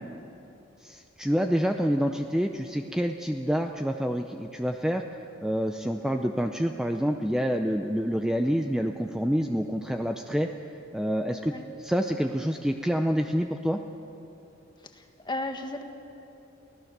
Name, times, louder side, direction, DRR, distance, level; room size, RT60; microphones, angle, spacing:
voice 1, 0.8-5.0 5.4-10.5 10.9-11.5 11.8-13.8, equal, 5° right, 4 dB, 0.6 m, -27 dB
voice 2, 14.8-15.8, left 2 dB, 25° left, 5 dB, 1.5 m, -35 dB
25.0 x 17.0 x 6.7 m, 2.9 s
head